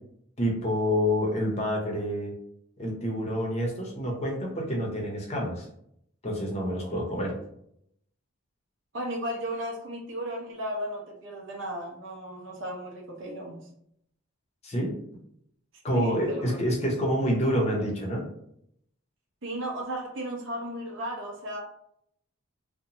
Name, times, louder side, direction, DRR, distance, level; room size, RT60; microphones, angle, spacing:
voice 1, 0.4-2.3 2.8-5.7 6.2-7.3 14.6-14.9 15.8-18.2, equal, 30° left, -1 dB, 0.6 m, -27 dB
voice 2, 6.8-7.4 8.9-13.7 15.9-16.6 19.4-21.6, right 1 dB, 60° right, 0 dB, 0.6 m, -35 dB
2.7 x 2.1 x 2.8 m, 0.74 s
head